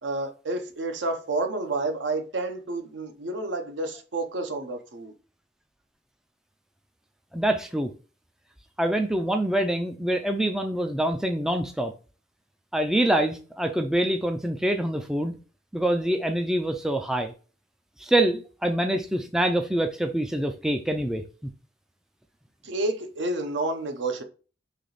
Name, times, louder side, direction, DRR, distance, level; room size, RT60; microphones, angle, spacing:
voice 1, 0.0-5.1 22.6-24.2, right 2 dB, 65° right, 0.7 m, -30 dB
voice 2, 7.3-7.9 8.8-11.9 12.7-15.3 15.7-17.3 18.0-21.5, right 1 dB, 5° right, 0.3 m, -25 dB
3.3 x 2.9 x 3.9 m
head